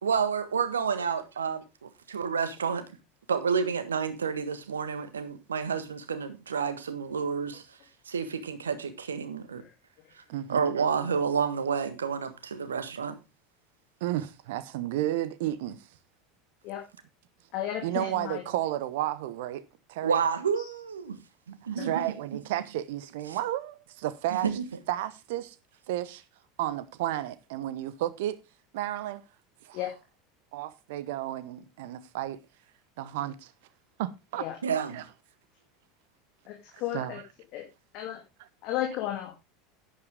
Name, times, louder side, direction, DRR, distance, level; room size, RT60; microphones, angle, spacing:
voice 1, 0.0-2.8 3.3-7.8 8.1-9.6 10.1-10.2 10.5-13.2 20.0-21.2 21.5-22.0 23.3-23.4 24.3-24.6 34.6-35.0, right 6 dB, 75° right, 1.5 m, -30 dB
voice 2, 10.3-10.6 14.0-15.8 17.8-19.6 19.9-20.2 21.7-24.5 24.9-25.5 25.9-26.2 26.6-28.4 28.7-29.2 29.6-29.8 30.5-32.4 33.0-33.5 34.0-35.0 36.7-37.2, right 13 dB, 60° right, 1.0 m, -32 dB
voice 3, 17.5-18.4 20.6-20.7 21.8-21.9 29.7-29.9 34.4-34.6 36.5-36.6 36.8-37.2 37.5-37.6 37.9-38.2 38.6-39.3, left 12 dB, 50° left, 2.9 m, -33 dB
10.5 x 10.5 x 3.6 m
figure-of-eight pair, 75°, 0 cm